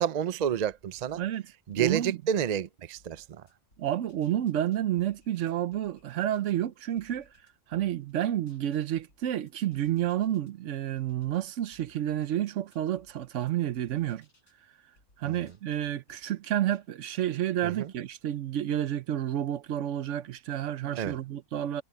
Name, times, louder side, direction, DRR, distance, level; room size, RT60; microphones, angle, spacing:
voice 1, 0.0-1.2 1.7-3.4 15.2-15.5 17.6-17.9 20.9-21.2, right 9 dB, 50° right, 0.5 m, -30 dB
sound 1, 1.0-2.6 3.0-6.6 7.0-10.5 11.0-14.6 15.0-16.9, left 2 dB, 90° left, 6.5 m, -65 dB
voice 2, 1.7-2.2 3.8-7.3 7.7-14.2 15.2-21.8, right 11 dB, 70° right, 0.9 m, -30 dB
omnidirectional pair, 1.4 m